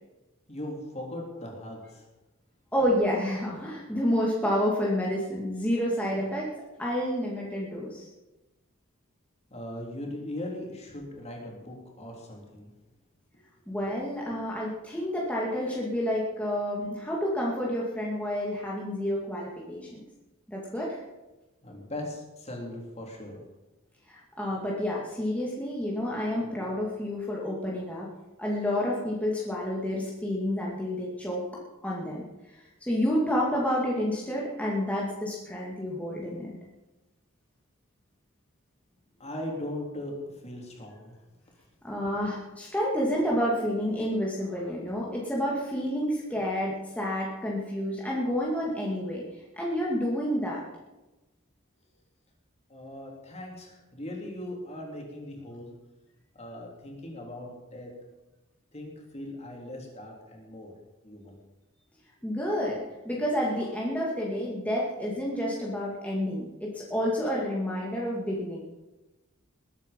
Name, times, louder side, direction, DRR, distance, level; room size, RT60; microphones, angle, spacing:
voice 1, 0.5-2.0 9.5-12.7 21.6-23.4 39.2-41.2 52.7-55.7 56.3-57.9 58.7-60.7 61.0-61.4, left 1 dB, 30° left, -1 dB, 3.7 m, -39 dB
voice 2, 2.7-6.5 6.8-8.1 13.7-20.0 20.5-21.0 24.1-28.1 28.4-31.5 31.8-32.2 32.6-36.5 41.8-50.6 62.2-68.6, equal, 5° left, -4 dB, 2.2 m, -29 dB
20.5 x 9.2 x 5.4 m, 1.1 s
head